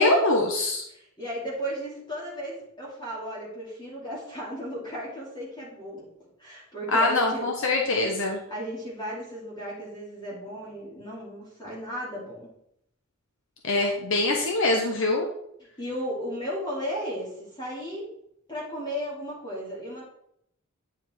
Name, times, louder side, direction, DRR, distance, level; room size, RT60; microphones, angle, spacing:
voice 1, 0.0-0.8 6.9-8.4 13.6-15.3, left 2 dB, 60° left, 1 dB, 1.1 m, -23 dB
voice 2, 0.9-6.1 6.4-7.5 8.5-12.5 15.8-18.1 18.5-20.0, equal, 20° left, -6 dB, 2.5 m, -35 dB
9.9 x 5.1 x 4.4 m, 0.73 s
head